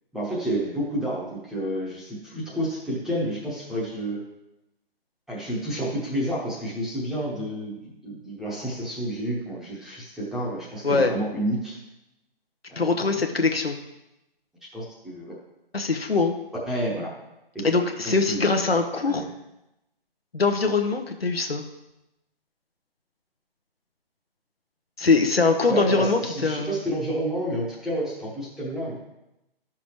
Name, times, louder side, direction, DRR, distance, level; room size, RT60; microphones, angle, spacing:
voice 1, 0.1-4.2 5.3-11.8 12.7-13.2 14.7-15.4 16.7-17.1 17.5-17.7 18.0-18.6 19.1-19.3 25.7-29.0, right 1 dB, ahead, -7 dB, 0.9 m, -30 dB
voice 2, 10.8-11.1 12.8-13.8 15.7-16.3 17.6-19.3 20.3-21.6 25.0-26.8, left 4 dB, 85° left, 5 dB, 0.9 m, -22 dB
12.0 x 6.0 x 3.1 m, 0.91 s
figure-of-eight pair, 140°, 29 cm